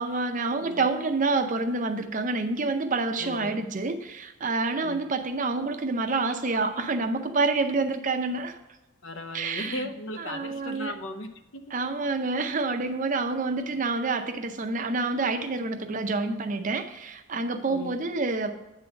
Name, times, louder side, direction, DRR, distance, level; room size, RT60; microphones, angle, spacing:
voice 1, 0.0-8.6 9.3-9.9 10.2-10.9 11.7-18.5, right 3 dB, 35° right, 7 dB, 0.6 m, -28 dB
voice 2, 3.2-3.6 4.8-5.0 9.0-11.6 13.6-13.8 17.7-18.1, left 2 dB, 60° left, 8 dB, 0.7 m, -37 dB
8.9 x 3.9 x 6.8 m, 1.0 s
head